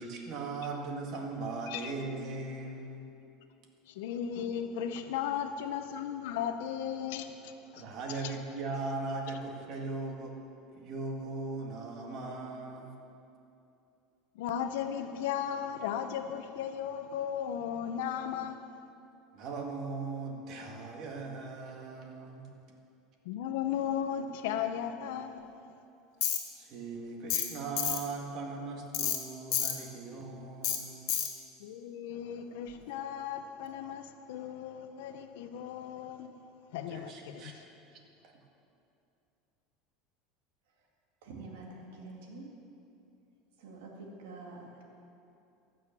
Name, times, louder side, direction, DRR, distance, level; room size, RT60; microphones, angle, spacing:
voice 1, 0.0-3.0 7.7-10.4 10.7-12.9 19.3-22.5 26.4-31.0 36.9-37.6 38.2-38.3, right 3 dB, 50° right, 1.9 m, -39 dB
voice 2, 3.9-7.8 14.4-18.6 23.3-25.4 31.6-36.3 36.7-37.6, left 9 dB, 80° left, 0.7 m, -36 dB
Tools, 26.2-26.4 27.3-27.5 27.8-28.0 28.9-29.2 29.5-29.7 30.6-30.8 31.1-31.3, left 10 dB, 60° left, 1.6 m, -29 dB
voice 3, 41.2-42.5 43.6-44.8, right 3 dB, 85° right, 2.0 m, -46 dB
15.0 x 6.4 x 7.3 m
supercardioid pair, 140°, 0 cm